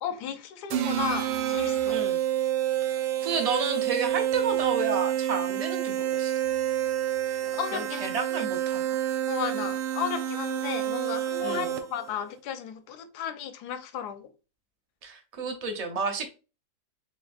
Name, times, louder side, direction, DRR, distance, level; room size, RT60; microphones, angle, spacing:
voice 1, 0.0-2.0 7.4-8.1 9.3-14.3, left 8 dB, 85° left, 1.2 m, -34 dB
sound 1, 0.7-12.1, right 12 dB, 90° right, 1.2 m, -28 dB
voice 2, 1.9-2.2 2.9-3.0 3.2-6.4 7.7-9.0 11.4-11.7 15.0-16.3, right 4 dB, 40° right, 0.5 m, -31 dB
4.1 x 3.4 x 2.5 m
omnidirectional pair, 1.7 m